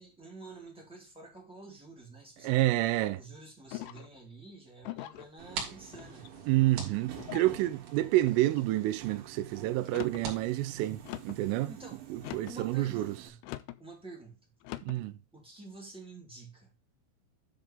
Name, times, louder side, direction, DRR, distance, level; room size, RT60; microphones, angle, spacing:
voice 1, 0.0-6.3 11.7-12.0 12.5-13.4 13.8-14.4 15.3-16.7, right 3 dB, ahead, 1.4 m, -49 dB
voice 2, 2.4-3.2 6.5-11.7 12.1-13.2 14.8-15.2, right 16 dB, 85° right, 3.2 m, -29 dB
sound 1, 3.7-4.2 4.8-5.3 5.9-6.5 7.2-7.6 8.3-8.7 9.8-10.3 11.1-11.5 12.2-12.6 13.4-13.8 14.6-15.0, left 16 dB, 85° left, 3.1 m, -42 dB
sound 2, 5.2-11.5, right 5 dB, 50° right, 3.6 m, -46 dB
Subway metro underground, 5.4-13.3, right 10 dB, 70° right, 4.0 m, -49 dB
10.5 x 3.9 x 5.1 m
omnidirectional pair, 5.8 m